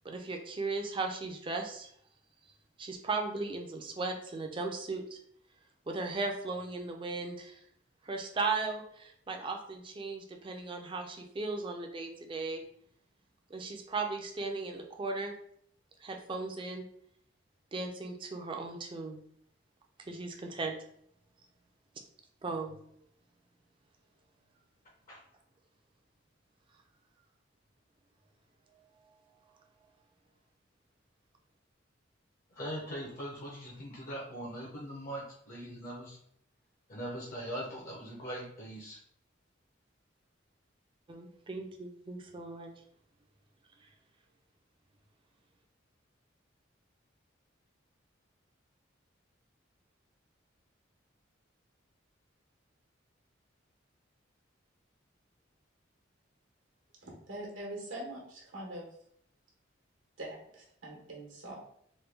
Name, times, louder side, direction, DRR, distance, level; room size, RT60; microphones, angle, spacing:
voice 1, 0.0-1.9 2.8-5.2 5.9-7.6 8.0-12.6 13.5-15.4 16.0-16.8 17.7-19.2 20.1-20.7 22.4-22.8 41.1-42.7, right 3 dB, 25° right, 3 dB, 0.4 m, -37 dB
voice 2, 32.6-36.2 36.9-39.0, equal, 45° left, -3 dB, 0.7 m, -41 dB
voice 3, 57.0-58.9 60.2-61.6, right 1 dB, 85° right, -1 dB, 1.0 m, -43 dB
3.1 x 2.2 x 3.3 m, 0.67 s
head